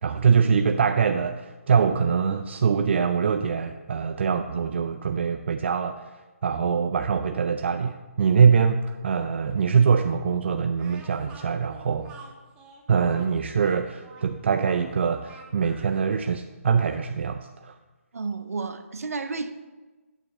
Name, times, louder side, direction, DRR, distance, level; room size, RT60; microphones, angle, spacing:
voice 1, 0.0-12.1 12.9-17.8, right 6 dB, 50° right, 7 dB, 0.4 m, -23 dB
Speech, 10.8-16.1, right 4 dB, 15° right, 0.6 m, -49 dB
voice 2, 18.1-19.5, right 4 dB, 80° right, 9 dB, 0.7 m, -31 dB
9.0 x 7.3 x 3.0 m, 1.2 s
hypercardioid pair, 155°, 8 cm